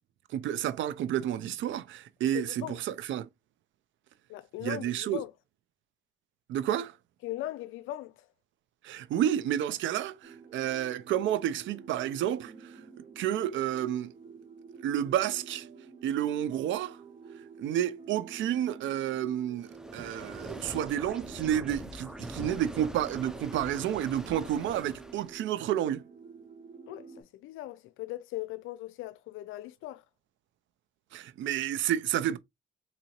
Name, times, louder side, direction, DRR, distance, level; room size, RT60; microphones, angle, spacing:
voice 1, 0.3-3.3 4.6-5.2 6.5-6.9 8.8-12.7 13.2-14.1 14.8-15.7 16.0-17.0 17.6-26.0 31.1-32.4, right 11 dB, 75° right, 0.5 m, -30 dB
voice 2, 2.2-2.8 4.3-5.3 7.2-8.1 26.9-30.0, left 15 dB, 90° left, 0.4 m, -39 dB
sound 1, 10.2-27.2, right 5 dB, 25° right, 1.2 m, -50 dB
sound 2, 19.6-25.4, equal, 5° right, 0.5 m, -43 dB
3.9 x 2.6 x 2.9 m
cardioid pair, 90°, 20 cm